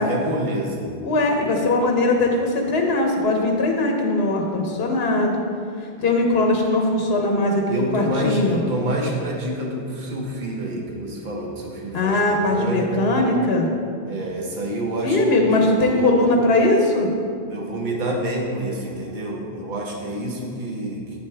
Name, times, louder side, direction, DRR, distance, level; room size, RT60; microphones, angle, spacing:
voice 1, 0.0-0.9 7.7-13.1 14.0-16.1 17.4-21.0, right 1 dB, 50° right, -1 dB, 1.1 m, -28 dB
voice 2, 1.0-5.4 6.0-8.6 11.9-13.7 15.0-17.1, left 2 dB, 75° left, 2 dB, 1.1 m, -20 dB
7.9 x 7.1 x 3.4 m, 2.3 s
omnidirectional pair, 1.0 m